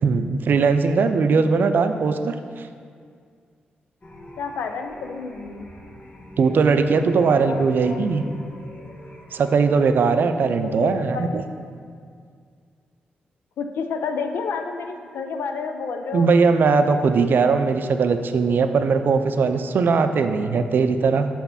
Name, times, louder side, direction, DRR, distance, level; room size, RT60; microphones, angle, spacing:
voice 1, 0.0-2.7 6.4-8.2 9.3-11.4 16.1-21.3, right 4 dB, 65° right, 8 dB, 0.4 m, -20 dB
sound 1, 4.0-9.6, left 1 dB, 35° left, 1.0 m, -44 dB
voice 2, 4.4-5.7 7.3-8.0 10.6-11.6 13.6-16.3, left 5 dB, 80° left, 5 dB, 0.5 m, -30 dB
5.8 x 4.3 x 5.7 m, 2.1 s
supercardioid pair, 50°, 4 cm